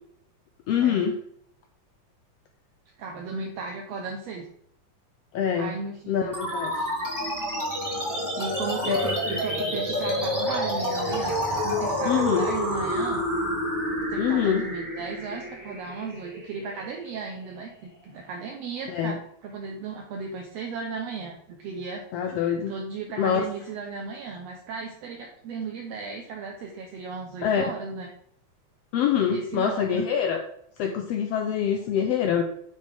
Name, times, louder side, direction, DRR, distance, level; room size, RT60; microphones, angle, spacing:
voice 1, 0.7-1.2 5.3-5.7 6.1-6.9 8.8-9.1 12.1-12.5 14.2-14.7 18.9-19.1 22.1-22.7 23.2-23.5 27.4-27.7 28.9-30.4 30.8-32.4, left 8 dB, 80° left, 4 dB, 1.4 m, -25 dB
voice 2, 3.0-4.5 5.5-6.3 8.3-13.2 14.1-22.0 22.4-28.1 29.3-30.0, right 4 dB, 75° right, 1 dB, 1.7 m, -36 dB
sound 1, 6.3-17.3, equal, 10° right, 1.5 m, -29 dB
9.6 x 4.1 x 3.4 m, 0.68 s
omnidirectional pair, 3.3 m